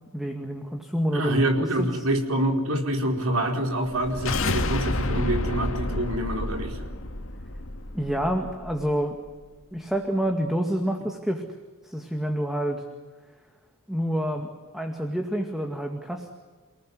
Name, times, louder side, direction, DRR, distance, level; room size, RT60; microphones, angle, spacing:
voice 1, 0.1-1.4 1.8-2.0 7.9-9.2 9.7-11.4 11.8-12.8 13.9-16.3, equal, ahead, 3 dB, 2.1 m, -28 dB
voice 2, 1.1-6.8, right 1 dB, 80° right, 3 dB, 4.6 m, -26 dB
sound 1, 3.8-8.9, left 2 dB, 65° left, 2.2 m, -30 dB
29.5 x 19.0 x 9.7 m, 1.4 s
head